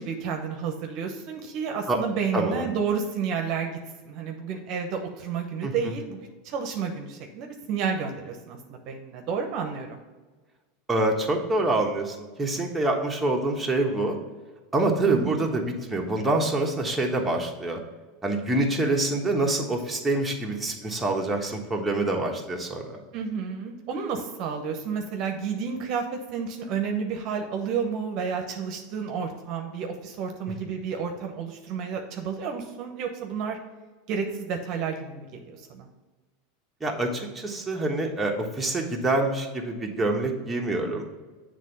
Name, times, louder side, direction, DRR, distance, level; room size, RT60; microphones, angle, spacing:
voice 1, 0.0-3.8 4.1-10.0 15.1-15.5 23.1-33.6 34.1-35.4 35.7-35.9, right 6 dB, 55° right, 4 dB, 0.8 m, -31 dB
voice 2, 2.3-2.7 5.6-5.9 10.9-14.2 14.7-17.8 18.2-23.0 30.5-30.6 36.8-41.0, right 2 dB, 10° right, 0 dB, 1.2 m, -26 dB
7.4 x 3.4 x 5.4 m, 1.3 s
hypercardioid pair, 95°, 0 cm